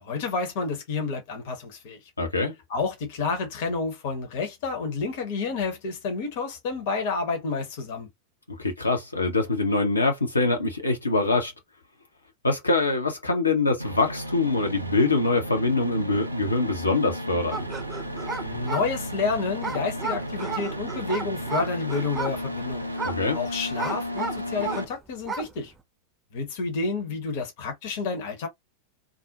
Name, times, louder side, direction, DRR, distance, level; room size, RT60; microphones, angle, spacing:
voice 1, 0.0-2.0 2.7-8.1 18.4-22.9 23.3-25.7 26.3-28.5, left 4 dB, 50° left, 0.8 m, -29 dB
voice 2, 2.2-2.5 8.6-11.5 12.4-17.6 23.0-23.4, left 3 dB, 80° left, 0.7 m, -24 dB
sound 1, 13.8-24.8, equal, 85° right, 0.4 m, -34 dB
sound 2, 17.5-24.9 25.2-25.6, right 4 dB, 15° right, 0.4 m, -34 dB
2.5 x 2.0 x 2.7 m
figure-of-eight pair, 90°, 0 cm